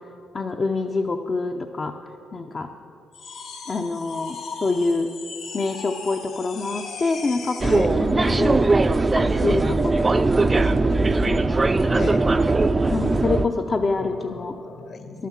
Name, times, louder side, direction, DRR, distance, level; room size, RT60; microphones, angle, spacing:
voice 1, 0.3-1.9 2.3-2.7 3.7-5.1 5.5-8.6 9.1-11.4 12.9-14.5 15.2-15.3, left 3 dB, 35° left, 3 dB, 0.6 m, -26 dB
sound 1, 3.1-7.8, left 5 dB, 75° left, 2.7 m, -38 dB
voice 2, 7.6-7.9 11.9-12.3 13.1-13.5 14.0-15.2, left 4 dB, 55° left, 7 dB, 1.4 m, -35 dB
sound 2, 7.6-13.5, right 3 dB, 25° right, 0.4 m, -20 dB
11.5 x 9.4 x 7.3 m, 2.7 s
cardioid pair, 90°, 0 cm